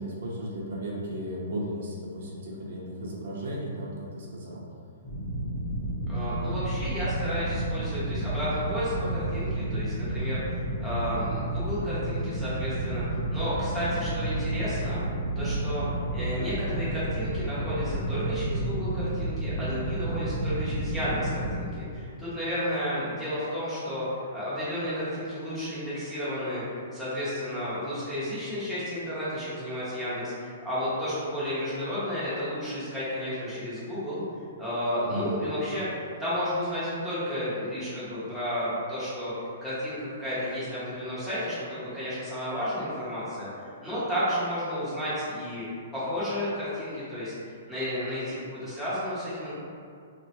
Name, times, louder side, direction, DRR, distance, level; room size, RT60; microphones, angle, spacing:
voice 1, 0.0-4.6 35.0-35.3, equal, 55° right, -4 dB, 0.6 m, -35 dB
sound 1, 5.0-21.6, right 1 dB, 40° left, 0.9 m, -31 dB
voice 2, 6.1-15.0 15.4-24.1 24.3-34.2 34.6-39.3 39.6-45.6 45.9-49.5, equal, 5° left, -13 dB, 0.7 m, -32 dB
3.4 x 2.1 x 2.8 m, 2.3 s
hypercardioid pair, 170°, 0 cm